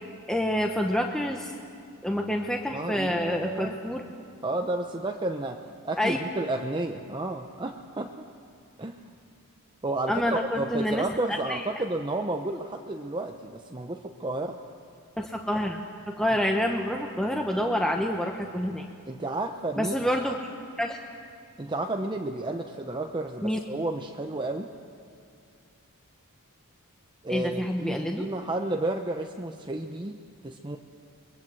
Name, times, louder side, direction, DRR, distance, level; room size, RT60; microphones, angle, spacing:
voice 1, 0.3-1.5 2.0-4.0 6.0-6.2 10.1-11.6 15.2-15.8 16.1-18.9 19.8-20.3 20.8-21.0 23.4-23.6 27.3-28.3, equal, 5° left, 2 dB, 1.0 m, -27 dB
voice 2, 2.7-3.8 4.4-8.1 8.8-9.0 9.8-14.6 19.1-20.1 21.6-24.7 27.2-30.8, right 2 dB, 20° right, 4 dB, 0.8 m, -32 dB
29.0 x 22.5 x 7.8 m, 2.3 s
head